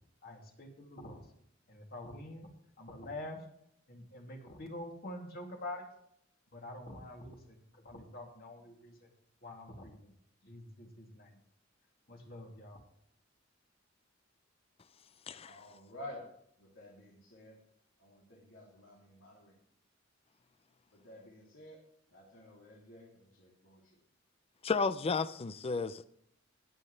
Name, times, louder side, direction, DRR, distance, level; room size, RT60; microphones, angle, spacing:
voice 1, 0.2-1.2 1.7-2.5 2.8-3.4 3.9-5.9 6.5-9.1 9.4-10.1 10.4-11.3 12.1-12.8, left 1 dB, 50° left, 2.6 m, -46 dB
voice 2, 15.5-16.2 16.7-17.5 18.0-19.5 21.0-21.7 22.1-23.1 23.4-23.8, left 1 dB, 85° left, 3.1 m, -51 dB
voice 3, 24.6-26.1, left 4 dB, 30° left, 0.4 m, -33 dB
20.5 x 7.5 x 3.3 m
head